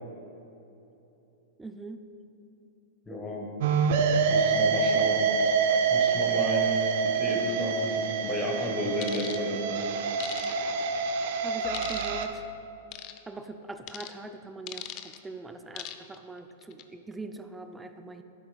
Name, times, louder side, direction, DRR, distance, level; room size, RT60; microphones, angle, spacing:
voice 1, 1.6-2.0 11.4-12.5 13.3-18.2, right 3 dB, 10° right, 7 dB, 0.4 m, -42 dB
voice 2, 3.1-3.5 4.3-5.3 5.9-9.9, left 1 dB, 15° left, -2 dB, 1.5 m, -32 dB
sound 1, 3.6-12.3, right 5 dB, 60° right, 0.6 m, -26 dB
sound 2, 9.0-9.4 10.2-10.8 11.7-12.3 12.9-13.2 13.9-14.1 14.7-15.2 15.8-16.2 16.6-16.8, left 12 dB, 40° left, 0.5 m, -39 dB
11.0 x 8.8 x 2.3 m, 2.9 s
hypercardioid pair, 120°, 0 cm